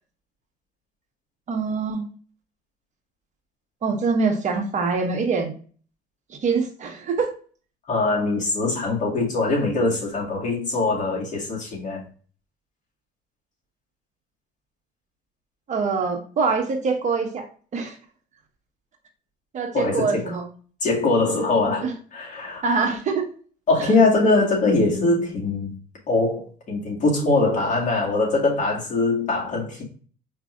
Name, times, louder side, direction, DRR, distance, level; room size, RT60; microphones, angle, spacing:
voice 1, 1.5-2.1 3.8-5.5 6.4-7.3 15.7-17.4 17.7-18.0 19.5-20.5 21.7-21.9 22.6-23.2 23.8-23.9, right 4 dB, 45° right, 1.2 m, -24 dB
voice 2, 7.9-12.0 19.7-20.2 20.8-21.9 22.1-22.6 23.7-25.8 26.1-29.8, left 3 dB, 45° left, 2.0 m, -22 dB
5.0 x 3.3 x 2.4 m
cardioid pair, 110°, 17 cm